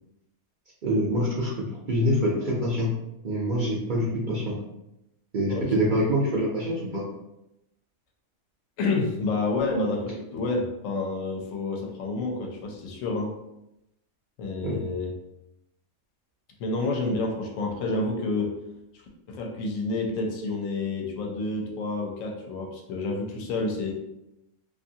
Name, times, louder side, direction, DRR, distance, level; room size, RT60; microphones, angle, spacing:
voice 1, 0.8-2.9 3.2-4.6 5.3-7.0 14.6-14.8, equal, 60° right, -4 dB, 0.5 m, -25 dB
voice 2, 8.8-13.3 14.4-15.1 16.6-18.5 19.3-23.9, left 3 dB, 70° left, 1 dB, 1.0 m, -29 dB
2.6 x 2.5 x 2.7 m, 0.87 s
omnidirectional pair, 1.5 m